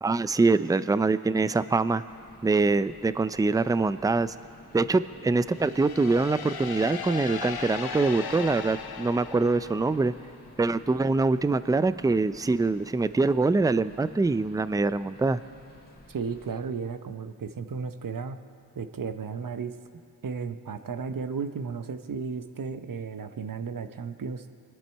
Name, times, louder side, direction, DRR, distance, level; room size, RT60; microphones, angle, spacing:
voice 1, 0.0-2.0 2.4-4.4 4.7-10.1 10.6-15.4, right 3 dB, 10° right, 14 dB, 0.4 m, -24 dB
sound 1, 2.1-16.6, left 1 dB, 25° left, 2.1 m, -52 dB
sound 2, 5.5-10.3, left 6 dB, 70° left, 0.8 m, -37 dB
voice 2, 16.1-18.4 18.8-19.7 20.2-24.5, right 5 dB, 55° right, 10 dB, 0.9 m, -34 dB
24.5 x 10.5 x 4.6 m, 2.5 s
cardioid pair, 50°, 39 cm